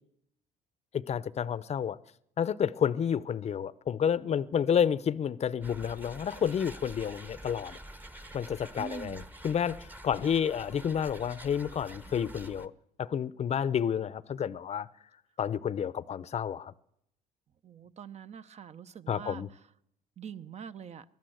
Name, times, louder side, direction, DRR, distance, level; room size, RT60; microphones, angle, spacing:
voice 1, 0.9-2.0 2.4-7.8 8.3-12.7 13.0-14.9 15.4-16.7 19.1-19.5, left 8 dB, 40° left, 0.7 m, -30 dB
sound 1, 5.6-12.7, right 1 dB, 10° right, 1.0 m, -47 dB
voice 2, 8.8-9.2 17.6-19.6 20.2-21.0, right 7 dB, 40° right, 0.9 m, -44 dB
23.5 x 14.5 x 7.9 m
cardioid pair, 110°, 17 cm